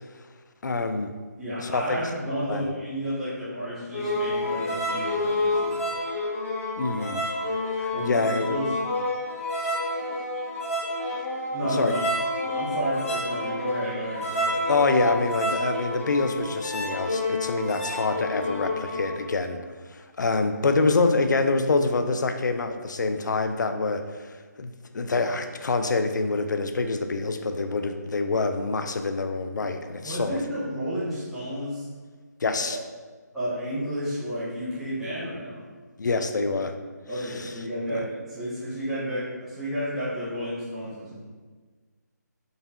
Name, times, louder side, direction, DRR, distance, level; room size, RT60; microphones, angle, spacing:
voice 1, 0.6-1.1 1.6-2.0 2.5-2.7 6.8-7.2 7.7-8.6 11.7-11.9 14.7-19.6 19.9-30.4 32.4-32.8 36.0-36.7 37.4-37.5 37.9-38.0, left 3 dB, 80° left, 7 dB, 0.4 m, -26 dB
voice 2, 1.4-5.8 7.9-8.7 11.5-12.0 12.5-14.6 30.0-31.9 32.6-32.7 33.3-35.7 37.1-41.2, equal, ahead, -13 dB, 0.5 m, -31 dB
sound 1, 3.9-19.3, left 1 dB, 50° left, 0.9 m, -29 dB
3.9 x 2.3 x 4.0 m, 1.4 s
hypercardioid pair, 170°, 10 cm